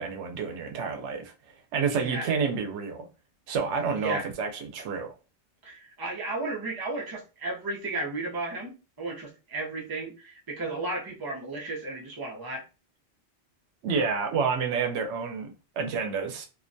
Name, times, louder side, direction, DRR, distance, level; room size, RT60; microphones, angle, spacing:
voice 1, 0.0-1.3 1.7-3.1 3.5-5.1 13.8-16.5, right 5 dB, 90° right, 0.9 m, -29 dB
voice 2, 1.9-2.3 3.9-4.3 5.6-12.6, right 2 dB, 25° right, 0.5 m, -34 dB
2.4 x 2.1 x 2.5 m
omnidirectional pair, 1.1 m